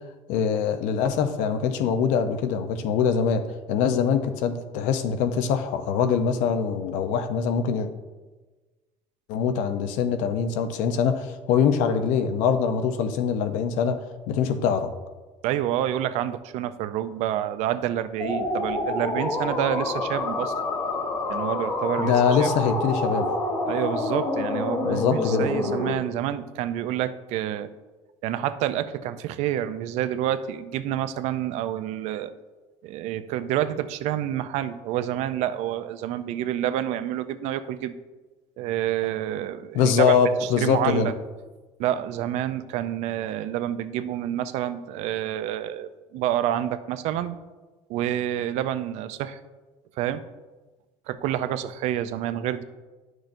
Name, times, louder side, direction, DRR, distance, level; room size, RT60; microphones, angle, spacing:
voice 1, 0.3-3.4 3.7-7.9 9.3-14.9 22.0-23.4 24.8-25.5 39.7-41.1, left 7 dB, 85° left, 9 dB, 0.6 m, -23 dB
voice 2, 15.4-20.5 21.3-22.1 22.4-22.5 23.7-27.7 28.2-32.3 32.8-38.0 38.6-41.1 41.8-47.4 47.9-49.4 50.0-50.2 51.1-52.6, right 11 dB, 65° right, 12 dB, 0.4 m, -28 dB
sound 1, 18.2-25.9, left 2 dB, 25° left, 0.8 m, -27 dB
10.0 x 6.2 x 2.6 m, 1.2 s
cardioid pair, 175°, 12 cm